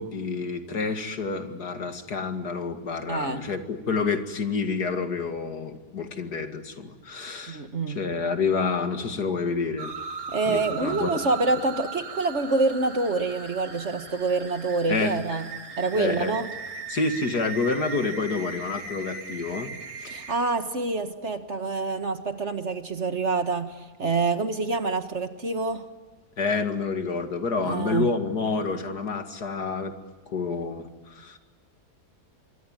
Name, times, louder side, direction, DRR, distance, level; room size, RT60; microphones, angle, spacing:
voice 1, 0.0-9.9 10.5-11.1 14.9-15.2 15.9-16.4 16.9-19.7 20.0-20.2 26.4-29.9 30.3-31.4, left 4 dB, 75° left, 7 dB, 2.7 m, -28 dB
voice 2, 3.1-3.5 7.5-8.0 10.3-15.5 15.8-16.5 20.1-25.9 27.6-28.2, right 3 dB, 45° right, 8 dB, 1.9 m, -26 dB
sound 1, 9.8-20.3, right 5 dB, 80° right, 3.1 m, -38 dB
27.0 x 23.5 x 9.1 m, 1.3 s
omnidirectional pair, 1.7 m